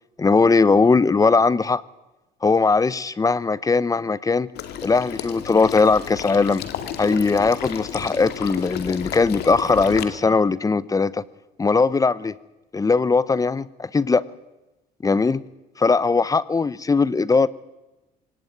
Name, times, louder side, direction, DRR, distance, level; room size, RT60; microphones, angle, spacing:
voice 1, 0.2-1.8 2.4-4.5 4.8-6.6 7.0-11.2 11.6-12.4 12.7-14.2 15.0-15.4 15.8-17.5, left 4 dB, 20° left, 19 dB, 0.8 m, -19 dB
Water / Liquid, 4.5-10.0, left 9 dB, 75° left, 2.4 m, -32 dB
24.0 x 18.0 x 9.5 m, 1.0 s
cardioid pair, 110°, 17 cm